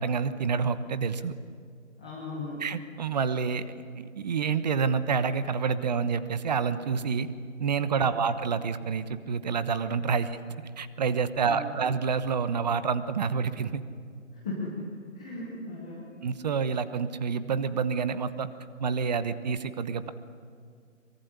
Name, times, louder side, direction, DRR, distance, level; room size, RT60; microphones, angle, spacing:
voice 1, 0.0-1.3 2.6-3.6 4.0-7.3 7.6-10.4 10.8-13.8 16.2-18.5 18.8-20.1, right 6 dB, 30° right, 13 dB, 1.1 m, -28 dB
voice 2, 2.0-2.6 8.0-8.2 11.4-11.8 14.3-16.1, left 2 dB, 5° left, -6 dB, 0.6 m, -37 dB
23.5 x 23.5 x 9.9 m, 2.1 s
hypercardioid pair, 160°, 39 cm